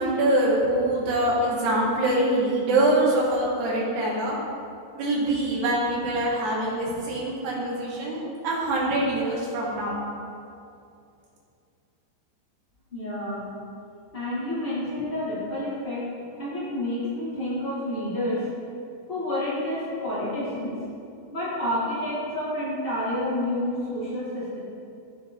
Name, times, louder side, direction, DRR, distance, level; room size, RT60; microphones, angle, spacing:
voice 1, 0.0-4.4 5.0-10.0, right 1 dB, 70° right, -4 dB, 3.7 m, -24 dB
voice 2, 12.9-13.5 14.1-16.1 16.4-18.5 19.1-20.7 21.3-24.6, left 1 dB, 50° left, -10 dB, 0.6 m, -29 dB
15.0 x 5.6 x 3.8 m, 2.5 s
omnidirectional pair, 5.1 m